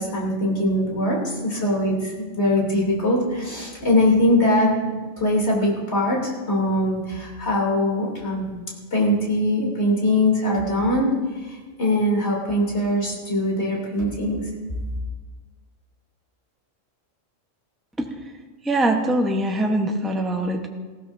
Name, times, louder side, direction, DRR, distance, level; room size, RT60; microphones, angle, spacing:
voice 1, 0.0-4.7 5.2-8.5 8.9-14.4, left 1 dB, 55° left, -2 dB, 3.4 m, -22 dB
voice 2, 18.6-20.7, right 1 dB, ahead, 2 dB, 0.8 m, -22 dB
19.0 x 15.5 x 2.7 m, 1.4 s
omnidirectional pair, 1.4 m